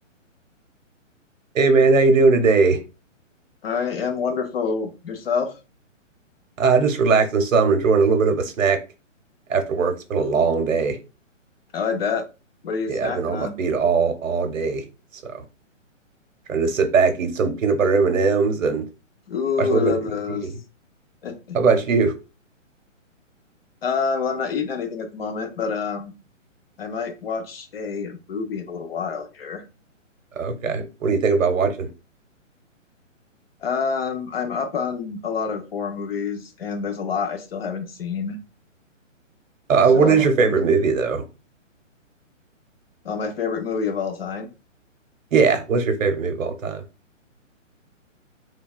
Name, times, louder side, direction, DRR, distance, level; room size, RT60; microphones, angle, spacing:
voice 1, 1.5-2.8 6.6-8.8 9.5-11.0 12.9-14.8 15.2-15.4 16.5-18.8 19.6-20.0 20.3-20.5 21.5-22.1 30.4-31.9 39.7-41.2 45.3-46.8, right 4 dB, 80° right, 8 dB, 0.8 m, -19 dB
voice 2, 3.6-5.6 11.7-12.3 12.6-13.6 19.3-20.5 21.2-21.6 23.8-26.1 26.8-29.6 33.6-38.4 39.9-40.6 43.0-44.5, left 5 dB, 50° left, 6 dB, 0.7 m, -27 dB
3.2 x 2.2 x 2.3 m, 0.29 s
hypercardioid pair, 160°, 39 cm